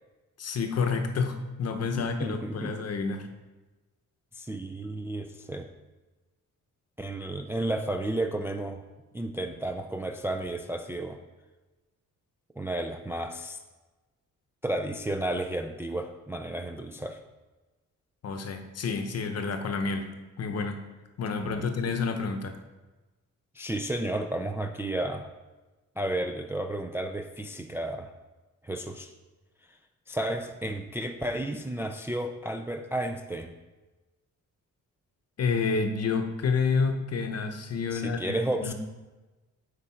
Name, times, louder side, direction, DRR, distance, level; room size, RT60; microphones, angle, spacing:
voice 1, 0.4-3.3 18.2-20.1 20.4-20.8 21.2-22.5 35.4-38.7, left 5 dB, 50° left, 6 dB, 0.8 m, -29 dB
voice 2, 1.9-2.8 4.4-5.7 7.0-8.8 9.1-11.2 12.6-13.6 14.6-17.2 21.4-21.7 23.6-25.3 26.0-28.1 28.6-29.1 30.1-33.5 37.9-38.7, right 1 dB, 10° right, 5 dB, 0.3 m, -32 dB
8.1 x 5.0 x 4.4 m, 1.2 s
wide cardioid pair, 155°, 31 cm